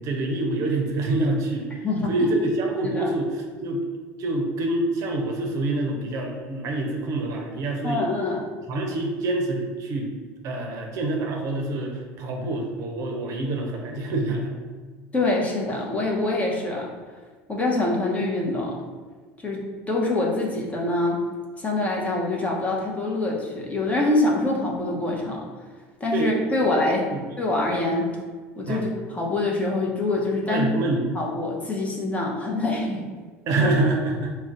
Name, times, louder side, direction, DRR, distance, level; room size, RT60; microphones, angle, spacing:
voice 1, 0.0-1.8 2.1-3.8 4.2-8.0 8.7-10.1 10.4-14.5 26.1-26.3 26.6-26.7 27.1-27.3 28.7-28.9 30.5-31.0 33.4-34.4, right 2 dB, 55° right, 2 dB, 0.5 m, -26 dB
voice 2, 1.8-2.4 2.8-3.1 7.8-8.4 15.1-16.9 17.5-18.8 19.4-21.2 21.6-25.4 26.0-27.0 27.4-28.1 28.6-30.7 31.1-33.0, left 2 dB, 20° left, -2 dB, 0.7 m, -25 dB
2.4 x 2.1 x 3.7 m, 1.4 s
supercardioid pair, 85°, 7 cm